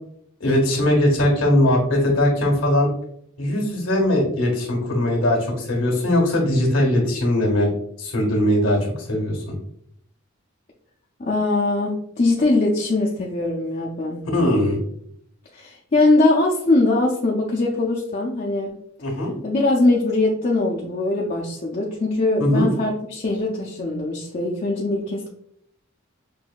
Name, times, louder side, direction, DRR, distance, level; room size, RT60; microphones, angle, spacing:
voice 1, 0.4-2.9 3.4-7.7 8.0-8.8 9.1-9.4 14.3-14.8 19.0-19.3 22.4-22.7, left 1 dB, 90° left, -1 dB, 1.4 m, -20 dB
voice 2, 11.2-14.2 15.5-18.7 19.4-25.3, left 2 dB, 40° left, -3 dB, 0.5 m, -21 dB
6.1 x 2.7 x 2.3 m, 0.71 s
head